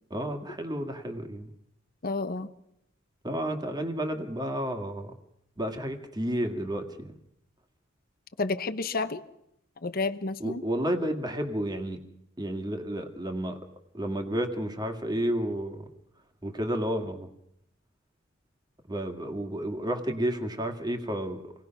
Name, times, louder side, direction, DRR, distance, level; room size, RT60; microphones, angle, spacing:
voice 1, 0.1-1.5 3.2-5.1 5.6-7.1 10.4-12.0 12.4-13.6 13.9-15.9 16.4-17.3 18.9-21.5, right 1 dB, 20° right, 5 dB, 2.0 m, -31 dB
voice 2, 2.0-2.5 8.4-9.2 9.8-10.6, left 3 dB, 50° left, 10 dB, 1.0 m, -30 dB
27.0 x 18.5 x 5.9 m, 0.78 s
head